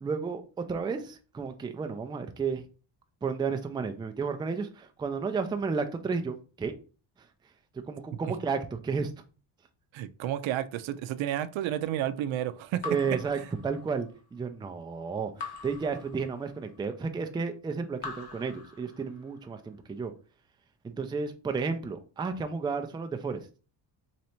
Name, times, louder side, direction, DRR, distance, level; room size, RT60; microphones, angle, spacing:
voice 1, 0.0-2.6 3.2-6.7 7.9-9.1 12.8-20.1 20.8-23.4, right 5 dB, 10° right, 0.3 m, -32 dB
voice 2, 9.9-12.8, right 12 dB, 85° right, 0.5 m, -31 dB
Raindrop / Drip, 12.8-14.2 15.4-16.8 18.0-19.4, left 5 dB, 60° left, 1.0 m, -43 dB
3.2 x 2.7 x 4.3 m
cardioid pair, 130°, 46 cm